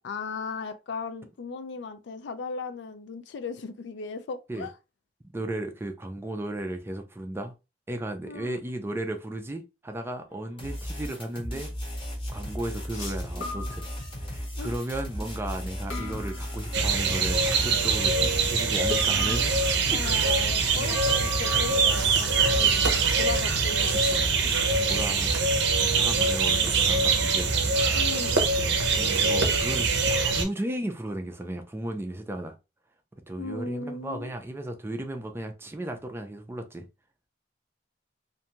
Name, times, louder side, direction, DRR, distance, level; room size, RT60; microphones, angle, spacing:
voice 1, 0.0-4.7 8.2-8.6 14.5-14.7 19.9-24.0 27.9-28.4 33.4-34.3, left 4 dB, 65° left, 0.4 m, -37 dB
voice 2, 5.3-7.5 7.9-11.7 12.3-13.9 14.2-20.3 24.9-27.5 29.0-32.6 33.3-36.9, right 1 dB, 10° right, 0.4 m, -35 dB
sound 1, 10.3-10.6 12.9-14.4 15.9-17.1 18.9-20.1 20.9-25.5, left 1 dB, 90° left, 0.8 m, -40 dB
sound 2, 10.6-25.4, equal, 30° left, 0.8 m, -35 dB
sound 3, 16.7-30.4, right 4 dB, 60° right, 0.6 m, -24 dB
2.6 x 2.2 x 2.8 m
head